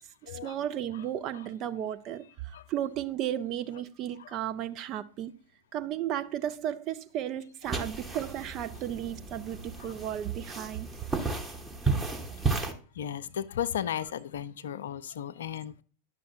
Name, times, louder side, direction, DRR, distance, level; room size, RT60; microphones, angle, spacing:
voice 1, 0.2-5.3 5.7-10.9 11.9-12.0, right 11 dB, 35° right, 0.5 m, -34 dB
sound 1, 7.6-12.7, right 4 dB, 10° right, 1.0 m, -33 dB
voice 2, 13.0-15.8, left 9 dB, 60° left, 0.4 m, -35 dB
10.0 x 6.2 x 2.8 m
figure-of-eight pair, 90°, 0 cm